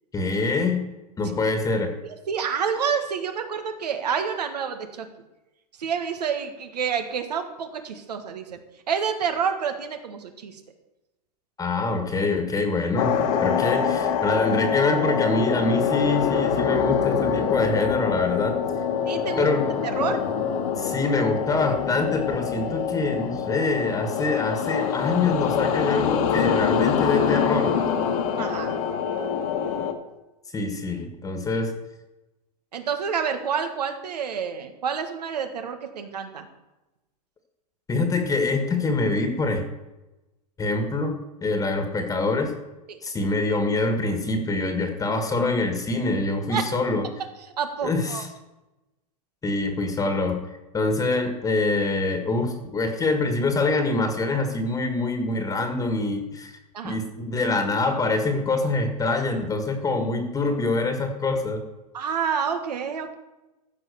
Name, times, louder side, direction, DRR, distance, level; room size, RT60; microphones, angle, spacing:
voice 1, 0.1-0.8 1.2-1.9 11.6-13.1 13.4-18.6 19.4-19.6 20.8-27.7 30.5-31.7 37.9-39.6 40.6-41.1 41.4-42.5 43.0-47.0 47.8-48.3 49.4-56.5 56.8-61.6, left 3 dB, 15° left, 6 dB, 1.6 m, -25 dB
voice 2, 2.0-5.1 5.8-8.6 8.9-10.6 19.0-19.5 20.0-20.2 28.4-28.8 32.7-36.5 42.9-43.0 46.5-46.6 47.6-48.3 56.7-57.0 61.9-63.1, right 7 dB, 85° right, 7 dB, 1.7 m, -28 dB
sound 1, 13.0-29.9, left 7 dB, 60° left, 1.6 m, -25 dB
14.5 x 5.6 x 6.9 m, 1.0 s
hypercardioid pair, 120°, 20 cm